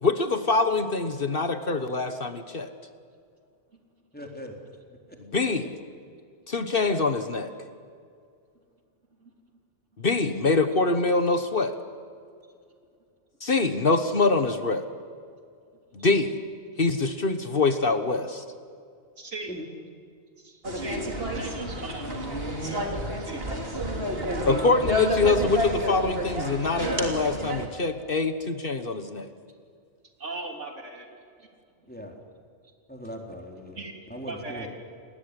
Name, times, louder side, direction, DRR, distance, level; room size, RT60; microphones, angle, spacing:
voice 1, 0.0-2.7 5.3-5.7 6.5-7.5 10.0-11.7 13.4-14.8 15.9-16.4 16.8-18.4 24.5-29.3, left 3 dB, 50° left, 9 dB, 1.5 m, -24 dB
voice 2, 4.1-4.5 5.1-5.2 19.5-19.7 21.1-21.5 31.9-32.2 32.9-33.8 34.1-34.7, equal, 10° left, 1 dB, 3.9 m, -40 dB
voice 3, 19.2-19.6 20.4-21.0 21.3-22.2 23.2-23.4 30.2-31.1 31.4-31.5 33.7-33.9 34.3-34.7, right 2 dB, 85° right, 2 dB, 3.7 m, -38 dB
sound 1, 20.6-27.7, equal, 55° right, 3.4 m, -30 dB
29.5 x 20.0 x 9.9 m, 2.3 s
omnidirectional pair, 1.2 m